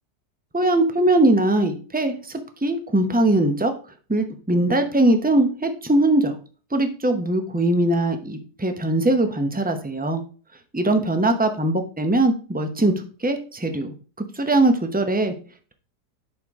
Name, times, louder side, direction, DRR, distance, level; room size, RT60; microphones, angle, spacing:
voice 1, 0.5-3.7 4.1-6.4 6.7-10.2 10.7-12.9 13.2-13.9 14.3-15.3, right 1 dB, 10° right, 7 dB, 0.4 m, -21 dB
11.0 x 4.6 x 3.6 m, 0.38 s
omnidirectional pair, 1.8 m